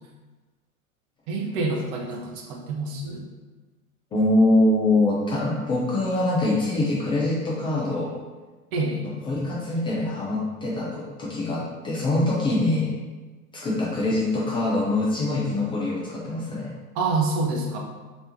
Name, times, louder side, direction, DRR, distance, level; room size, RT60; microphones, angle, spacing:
voice 1, 1.3-3.2 8.7-9.1 16.9-17.8, right 3 dB, 40° right, 1 dB, 0.8 m, -27 dB
voice 2, 4.1-8.1 9.0-13.0 13.5-16.7, left 2 dB, 15° left, -5 dB, 0.3 m, -24 dB
3.3 x 3.1 x 2.7 m, 1.3 s
hypercardioid pair, 95°, 43 cm